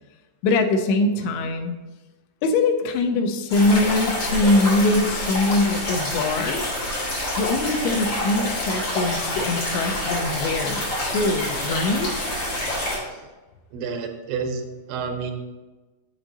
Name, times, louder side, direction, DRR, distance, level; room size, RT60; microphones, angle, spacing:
voice 1, 0.4-1.7 2.4-6.6 7.4-12.3, left 2 dB, 90° left, 6 dB, 3.0 m, -22 dB
sound 1, 3.5-13.0, left 1 dB, 35° left, 4.0 m, -27 dB
voice 2, 13.7-15.3, right 5 dB, 85° right, 5 dB, 3.1 m, -30 dB
8.1 x 7.6 x 3.9 m, 1.2 s
omnidirectional pair, 5.1 m